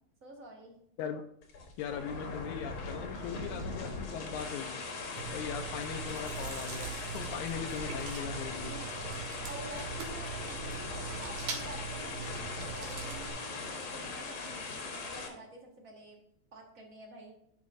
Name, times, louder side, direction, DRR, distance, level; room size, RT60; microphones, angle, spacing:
voice 1, 0.2-0.8 5.4-5.8 7.1-7.4 8.5-16.2 16.5-17.3, right 2 dB, 40° right, 0 dB, 1.2 m, -49 dB
sound 1, 1.4-15.3, left 3 dB, 55° left, 1.8 m, -40 dB
voice 2, 1.8-4.8 5.3-6.9 7.1-8.7, left 8 dB, 85° left, 4 dB, 2.0 m, -39 dB
Chewing mastication, 5.2-13.3, right 6 dB, 75° right, 2.6 m, -42 dB
11.5 x 6.1 x 2.5 m, 0.73 s
omnidirectional pair, 3.4 m